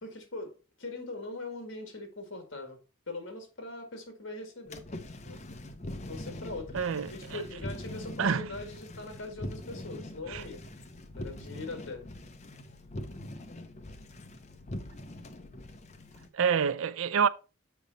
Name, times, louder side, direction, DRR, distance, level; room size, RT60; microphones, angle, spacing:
voice 1, 0.0-2.8 3.1-4.8 5.2-5.4 6.1-6.8 7.1-10.7 11.2-12.1, left 2 dB, 60° left, 1.9 m, -41 dB
sound 1, 4.7-16.3, left 1 dB, 35° left, 0.7 m, -43 dB
voice 2, 6.7-7.4 8.2-8.5 10.3-10.4 16.3-17.3, right 6 dB, 70° right, 0.4 m, -27 dB
7.2 x 5.1 x 4.0 m
head